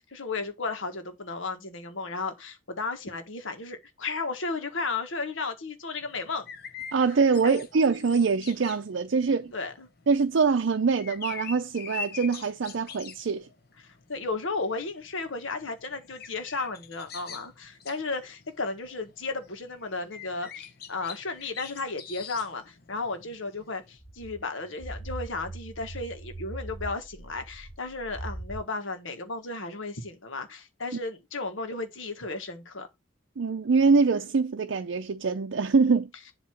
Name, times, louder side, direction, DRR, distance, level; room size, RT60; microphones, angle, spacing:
voice 1, 0.0-6.5 7.4-7.6 9.5-9.9 13.8-32.9, left 3 dB, 85° left, 1.5 m, -34 dB
sound 1, 6.0-24.0, left 7 dB, 50° left, 1.0 m, -45 dB
voice 2, 6.9-9.5 10.1-13.5 33.4-36.1, right 4 dB, 75° right, 0.5 m, -24 dB
sound 2, 24.0-28.6, right 2 dB, 35° left, 2.9 m, -40 dB
7.7 x 3.0 x 5.8 m
head